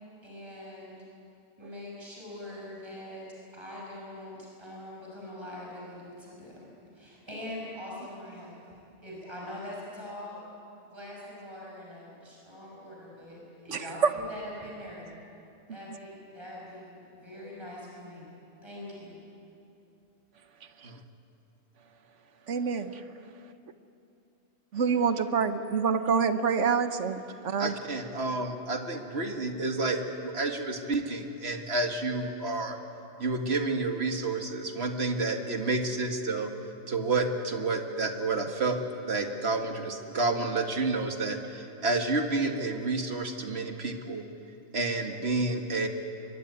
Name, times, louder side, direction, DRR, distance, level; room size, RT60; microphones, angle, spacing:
voice 1, 0.2-1.0 1.6-3.3 3.5-6.6 6.9-8.5 9.0-10.4 10.8-15.1 15.7-18.3 18.6-19.2, left 1 dB, 20° right, -4 dB, 6.6 m, -43 dB
voice 2, 22.5-23.0 24.7-27.7, right 6 dB, 75° right, 10 dB, 1.4 m, -27 dB
voice 3, 27.6-32.8 33.2-36.5 36.9-38.8 39.1-44.2 44.7-45.9, right 3 dB, 60° right, 4 dB, 2.1 m, -30 dB
23.5 x 22.5 x 9.6 m, 2.8 s
omnidirectional pair, 1.3 m